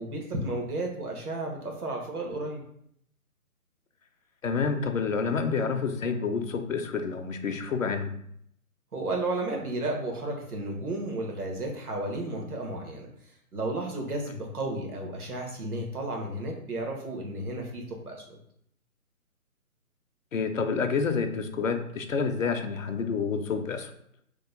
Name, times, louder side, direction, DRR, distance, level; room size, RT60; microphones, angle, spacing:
voice 1, 0.0-2.6 8.9-13.1 13.5-18.4, right 2 dB, 75° right, 1 dB, 1.1 m, -33 dB
voice 2, 4.4-8.1 20.3-23.9, left 5 dB, 60° left, 7 dB, 0.5 m, -28 dB
2.9 x 2.1 x 3.7 m, 0.69 s
figure-of-eight pair, 150°, 45 cm